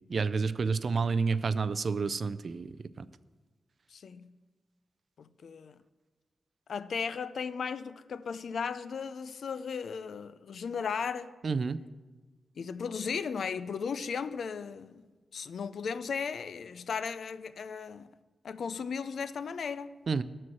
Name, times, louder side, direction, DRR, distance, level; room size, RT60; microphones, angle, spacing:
voice 1, 0.1-3.0 11.4-11.8 20.1-20.2, right 4 dB, 45° right, 0.3 m, -29 dB
voice 2, 3.9-4.3 5.2-5.8 6.7-11.3 12.6-15.0 15.3-18.1 18.4-19.9, left 6 dB, 70° left, 0.4 m, -36 dB
12.5 x 4.3 x 7.6 m
wide cardioid pair, 150°, 0 cm